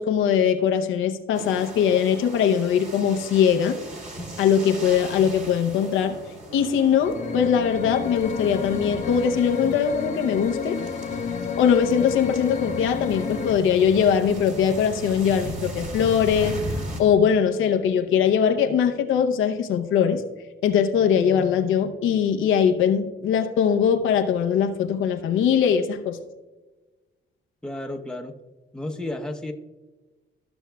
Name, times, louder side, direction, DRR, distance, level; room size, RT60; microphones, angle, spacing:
voice 1, 0.0-3.8 4.4-6.2 6.5-10.8 11.6-16.6 17.0-20.2 20.6-26.2, left 7 dB, 85° left, 5 dB, 0.7 m, -21 dB
sound 1, 1.3-17.0, right 1 dB, 40° right, 2.3 m, -38 dB
sound 2, 7.0-13.5, left 6 dB, 35° left, 0.8 m, -30 dB
voice 2, 27.6-28.3 28.7-29.5, left 1 dB, 5° left, 3 dB, 0.9 m, -32 dB
14.0 x 6.1 x 2.3 m, 1.2 s
cardioid pair, 90°, 20 cm